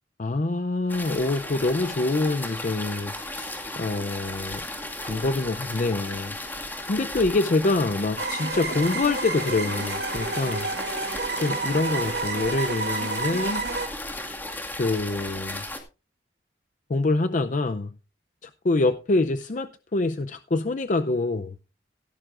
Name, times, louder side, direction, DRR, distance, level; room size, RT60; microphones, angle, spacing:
voice 1, 0.2-4.6 5.0-6.4 6.8-10.7 11.4-13.7 14.8-15.6 16.9-17.9 18.4-21.6, left 2 dB, 45° left, 0.5 m, -26 dB
sound 1, 0.9-15.8, left 1 dB, 10° left, 1.9 m, -35 dB
sound 2, 8.2-13.9, right 3 dB, 70° right, 1.6 m, -30 dB
16.5 x 12.0 x 2.5 m
head